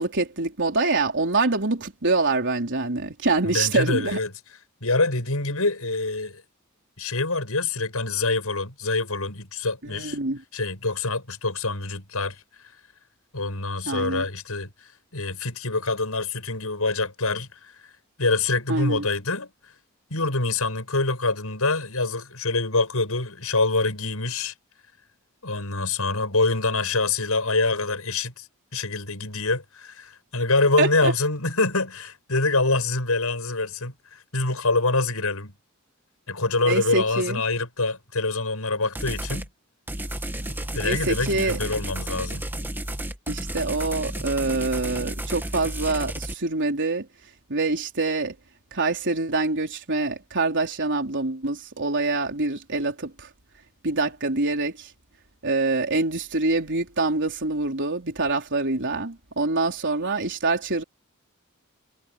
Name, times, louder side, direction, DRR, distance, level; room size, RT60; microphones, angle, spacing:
voice 1, 0.0-4.2 9.8-10.4 13.8-14.3 18.7-19.1 30.8-31.1 36.7-37.4 40.4-41.6 43.3-47.1 47.5-48.3 48.7-53.3 53.8-54.9 55.4-60.8, right 3 dB, 55° right, 4.2 m, -25 dB
voice 2, 3.4-4.3 4.8-6.4 7.0-10.2 10.5-12.4 13.3-14.7 15.1-17.5 18.2-19.5 20.1-24.5 25.4-28.5 28.7-35.5 36.3-39.5 40.7-42.4, left 3 dB, 80° left, 7.1 m, -25 dB
sound 1, 39.0-39.5 39.9-46.3, right 1 dB, 10° right, 2.3 m, -32 dB
head